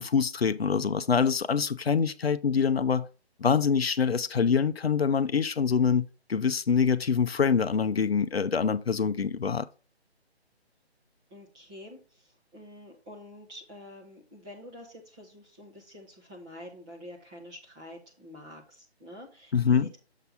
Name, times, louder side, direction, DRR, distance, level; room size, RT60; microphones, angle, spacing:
voice 1, 0.0-3.1 3.4-9.7 19.5-19.9, left 6 dB, 65° left, 0.6 m, -25 dB
voice 2, 11.3-20.0, left 1 dB, 5° right, 0.7 m, -47 dB
7.3 x 5.4 x 3.7 m
figure-of-eight pair, 145°, 33 cm